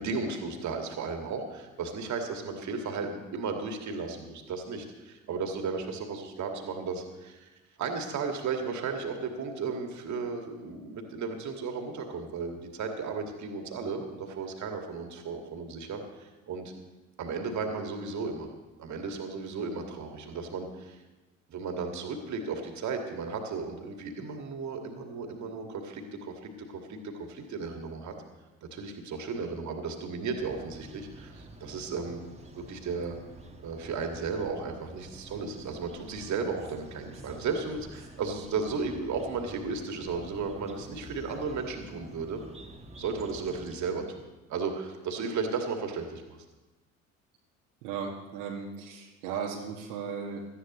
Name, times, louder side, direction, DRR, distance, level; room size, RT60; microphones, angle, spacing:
voice 1, 0.0-7.5 7.8-16.7 17.2-18.5 18.8-21.0 21.5-28.1 28.7-32.2 32.5-33.2 33.6-42.4 43.0-46.4, right 4 dB, 45° right, 4 dB, 2.0 m, -35 dB
sound 1, 30.4-43.8, right 1 dB, 15° right, 1.4 m, -48 dB
voice 2, 47.8-50.5, right 6 dB, 70° right, -2 dB, 1.3 m, -36 dB
17.5 x 12.5 x 3.1 m, 1.2 s
figure-of-eight pair, 60°, 39 cm